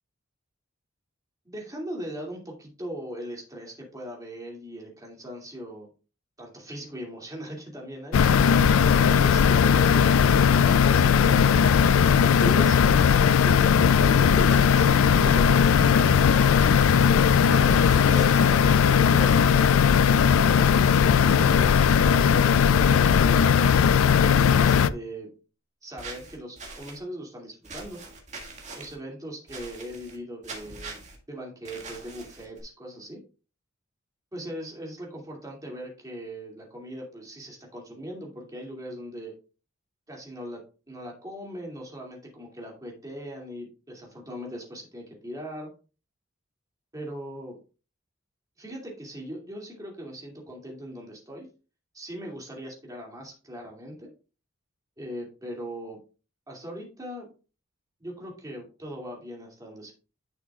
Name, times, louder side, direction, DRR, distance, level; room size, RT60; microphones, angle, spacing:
voice 1, 1.5-5.9 6.4-8.2 9.1-10.1 10.5-11.6 12.4-16.5 17.5-19.4 20.4-23.5 24.5-25.3 25.8-28.0 28.7-31.0 31.3-33.2 34.3-39.3 40.1-40.6 40.9-45.7 46.9-47.6 48.6-51.5 51.9-54.1 55.0-56.0 56.5-57.3 58.0-59.9, equal, 15° right, -1 dB, 2.4 m, -39 dB
sound 1, 8.1-24.9, left 7 dB, 90° left, 0.4 m, -18 dB
Giggle, 9.2-9.8 10.6-11.1 11.8-11.9 12.2-13.0 14.2-14.8 16.0-16.6 17.9-18.4 19.8-19.9, left 2 dB, 35° left, 0.7 m, -38 dB
sound 2, 17.9-18.4 26.0-27.0 27.6-28.9 29.5-30.2 30.4-31.2 31.6-32.6, right 3 dB, 35° right, 1.9 m, -42 dB
10.5 x 6.2 x 2.4 m, 0.34 s
head